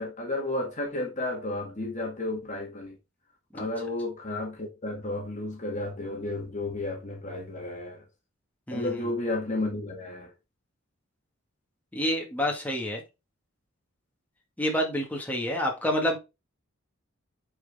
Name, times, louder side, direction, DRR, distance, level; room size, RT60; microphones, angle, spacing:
voice 1, 0.0-3.0 3.5-8.0 8.7-10.3, left 2 dB, 35° left, 1.9 m, -32 dB
voice 2, 11.9-13.0 14.6-16.2, equal, 5° left, 2.2 m, -28 dB
9.2 x 4.5 x 3.7 m
head